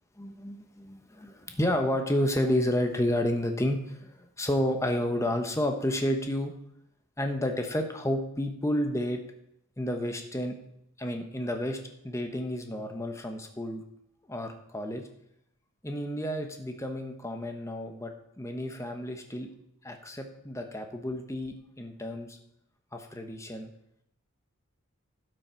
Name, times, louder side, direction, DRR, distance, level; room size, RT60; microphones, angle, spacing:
voice 1, 0.2-6.5 7.2-9.2 9.8-10.5 11.0-11.8 12.0-13.8 14.3-15.0 15.8-19.5 19.8-22.4 22.9-23.7, left 1 dB, 15° left, 5 dB, 1.0 m, -30 dB
11.5 x 6.4 x 4.5 m, 0.77 s
head